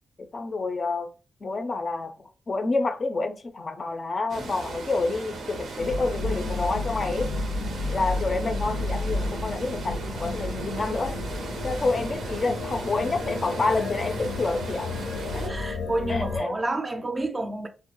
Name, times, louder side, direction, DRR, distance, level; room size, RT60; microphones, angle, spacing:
voice 1, 0.2-1.1 1.4-7.3 7.9-11.1 11.6-14.9 15.3-15.4 16.1-16.5, left 3 dB, 45° left, 0.4 m, -28 dB
sound 1, 4.3-15.5, right 3 dB, 85° right, 0.5 m, -38 dB
sound 2, 5.8-16.4, left 2 dB, 90° left, 0.6 m, -32 dB
voice 2, 15.4-17.7, right 2 dB, 30° right, 0.4 m, -29 dB
2.2 x 2.0 x 2.8 m
cardioid pair, 75°, 0 cm